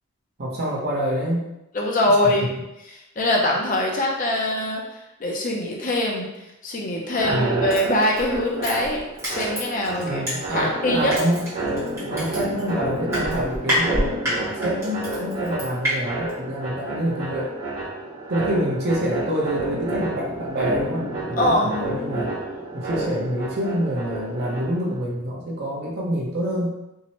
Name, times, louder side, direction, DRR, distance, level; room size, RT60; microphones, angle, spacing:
voice 1, 0.4-1.5 7.3-7.6 9.9-11.5 12.1-17.5 18.3-22.3 22.7-26.7, equal, 50° right, -3 dB, 0.7 m, -27 dB
voice 2, 1.7-2.5 3.2-6.3 6.6-9.0 9.3-10.2 10.5-11.1 21.4-21.7, left 1 dB, 40° left, -1 dB, 0.5 m, -23 dB
sound 1, 7.1-25.0, right 2 dB, 80° right, 0.9 m, -30 dB
Crushing, 7.7-10.7 11.1-15.9 16.3-16.4, equal, 15° right, 1.0 m, -27 dB
2.7 x 2.1 x 2.9 m, 0.91 s
head